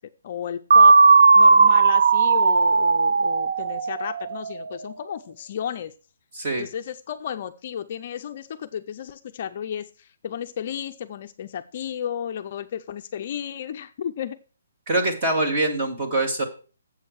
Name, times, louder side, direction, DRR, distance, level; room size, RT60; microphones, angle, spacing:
voice 1, 0.2-1.0 1.4-5.9 6.6-14.4, left 9 dB, 35° left, 7 dB, 0.4 m, -33 dB
sound 1, 0.7-4.6, right 4 dB, 65° right, 0.5 m, -16 dB
voice 2, 6.3-6.6 14.9-16.4, right 2 dB, 25° right, 3 dB, 1.7 m, -24 dB
7.7 x 6.5 x 6.3 m, 0.37 s
hypercardioid pair, 175°, 0 cm